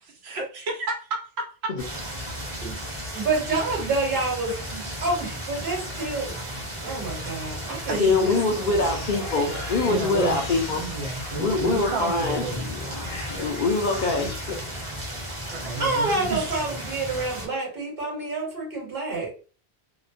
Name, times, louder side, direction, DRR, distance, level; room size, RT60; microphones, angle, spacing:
voice 1, 0.2-1.5 4.7-4.9 7.7-8.3 9.8-12.7 13.0-13.2 15.5-16.7, right 3 dB, 90° right, 1.0 m, -32 dB
sound 1, 1.8-17.5, equal, 30° right, 0.8 m, -35 dB
voice 2, 3.1-4.6 5.0-6.3 6.8-8.9 15.8-19.3, right 3 dB, 60° right, 1.3 m, -28 dB
voice 3, 8.0-10.8 11.4-12.4 13.4-14.6, left 3 dB, 60° left, 0.6 m, -24 dB
sound 2, 8.8-11.8 12.5-14.4, left 2 dB, 75° left, 1.2 m, -37 dB
2.9 x 2.0 x 2.5 m
omnidirectional pair, 1.1 m